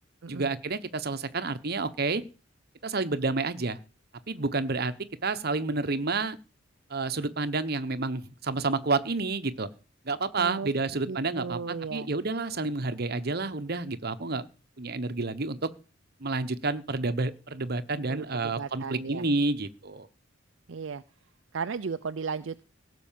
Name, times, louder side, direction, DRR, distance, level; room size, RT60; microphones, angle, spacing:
voice 1, 0.3-2.2 2.8-3.8 4.3-4.9 5.2-6.4 6.9-9.7 10.0-14.4 14.8-15.7 16.2-20.1, right 3 dB, 55° right, 12 dB, 1.1 m, -29 dB
voice 2, 10.4-10.7 11.1-12.1 18.1-19.2 20.7-21.0 21.5-22.6, right 5 dB, 70° right, 11 dB, 0.5 m, -35 dB
17.0 x 6.2 x 7.5 m, 0.34 s
head